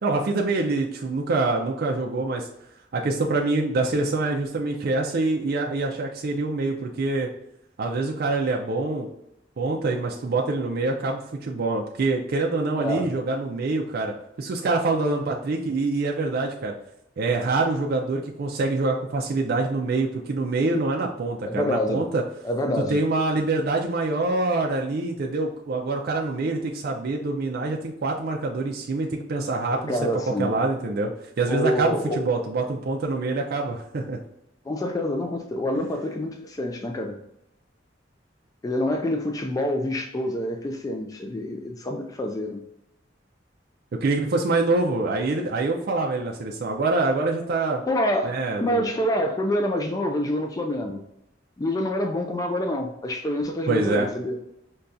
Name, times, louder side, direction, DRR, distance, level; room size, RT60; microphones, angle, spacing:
voice 1, 0.0-2.5 2.9-7.3 7.8-9.1 9.6-16.7 17.2-22.2 22.9-30.0 30.4-31.1 31.4-34.2 35.7-35.8 44.0-47.8 48.2-48.8 53.7-54.1, right 3 dB, 55° right, 0 dB, 0.4 m, -25 dB
voice 2, 12.8-13.1 21.4-22.0 22.4-23.0 29.7-30.5 31.5-32.2 34.7-37.2 38.6-42.6 47.9-51.0 51.6-54.4, left 1 dB, 20° left, 3 dB, 0.3 m, -27 dB
5.4 x 2.3 x 2.5 m, 0.83 s
head